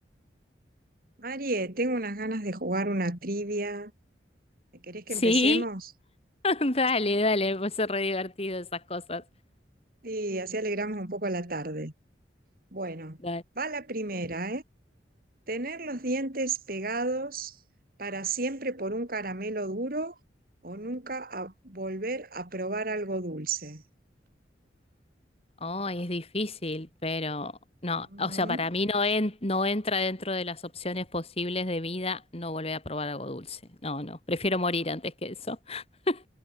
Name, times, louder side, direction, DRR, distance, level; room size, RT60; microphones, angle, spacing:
voice 1, 1.2-3.9 4.8-5.8 10.0-11.9 12.7-13.2 13.6-14.6 15.5-17.6 18.0-20.1 20.6-23.8 28.1-28.6, right 2 dB, 55° right, 3.3 m, -32 dB
voice 2, 5.1-5.6 6.4-9.2 13.2-13.4 25.6-27.5 27.8-36.3, left 2 dB, 35° left, 2.9 m, -29 dB
head